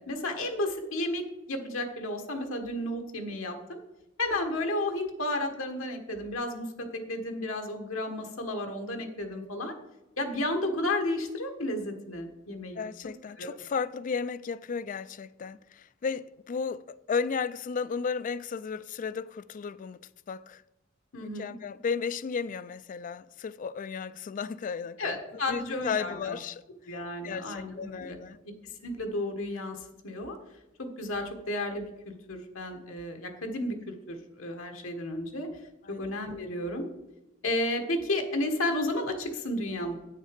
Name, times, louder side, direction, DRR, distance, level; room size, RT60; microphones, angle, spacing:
voice 1, 0.0-3.8 4.2-9.7 10.2-12.8 13.4-13.6 21.1-21.5 25.0-26.3 26.9-28.2 28.4-30.4 30.8-35.5 35.9-36.9 37.4-40.0, left 1 dB, 80° left, 1.4 m, -32 dB
voice 2, 12.7-20.0 20.3-20.6 21.2-25.2 25.5-26.6 27.2-28.4 35.8-36.1, left 5 dB, 40° left, 0.3 m, -34 dB
8.9 x 6.5 x 5.1 m
head